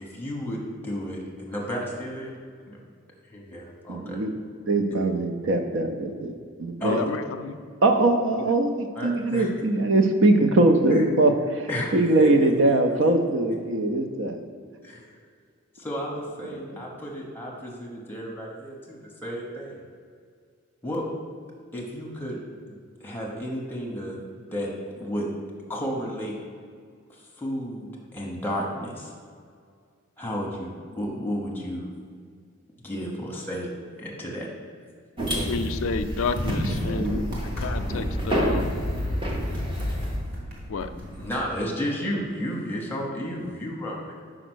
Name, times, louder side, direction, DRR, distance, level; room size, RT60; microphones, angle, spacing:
voice 1, 0.0-2.3 2.7-2.8 3.3-4.2 6.8-7.0 8.9-9.5 10.9-11.0 11.7-11.9 12.2-12.8 14.8-15.0 15.7-19.9 20.8-21.0 21.7-22.4 22.7-24.7 25.0-25.3 25.7-26.3 27.4-29.1 30.2-31.9 32.8-33.7 34.0-34.5 41.2-44.1, equal, 10° left, -3 dB, 1.0 m, -32 dB
voice 2, 3.9-4.3 4.7-6.3 6.6-7.0 7.8-14.4 36.9-37.3, right 2 dB, 60° right, 6 dB, 0.5 m, -22 dB
voice 3, 6.9-7.6 35.4-38.7 40.7-40.9, left 4 dB, 75° left, 8 dB, 0.4 m, -30 dB
sound 1, 35.2-40.2, equal, 25° right, 0.9 m, -28 dB
sound 2, 35.9-41.4, left 1 dB, 45° right, 1.5 m, -38 dB
5.0 x 5.0 x 6.2 m, 2.1 s
head